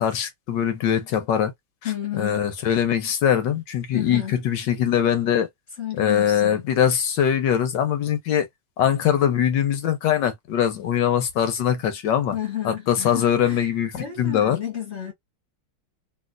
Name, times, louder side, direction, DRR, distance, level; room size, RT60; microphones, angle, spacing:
voice 1, 0.0-1.5 1.8-5.5 6.0-8.5 8.8-12.4 12.6-14.6, left 9 dB, 70° left, 1.3 m, -22 dB
voice 2, 1.8-2.5 3.9-4.4 5.8-6.7 12.3-13.7 14.0-15.1, left 10 dB, 45° left, 1.0 m, -31 dB
3.2 x 2.8 x 2.4 m
omnidirectional pair, 2.1 m